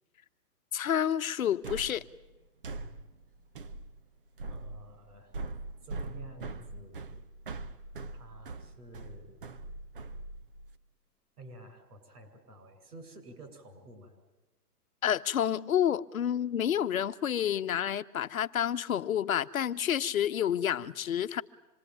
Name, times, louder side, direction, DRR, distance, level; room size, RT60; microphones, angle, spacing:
voice 1, 0.7-2.0 15.0-21.4, left 9 dB, 60° left, 1.1 m, -29 dB
sound 1, 1.6-10.8, right 2 dB, 35° right, 0.8 m, -42 dB
voice 2, 4.5-5.3 5.8-7.2 8.1-9.4 11.4-14.2, right 2 dB, 70° right, 7.8 m, -51 dB
26.5 x 21.5 x 9.3 m
hypercardioid pair, 170°, 47 cm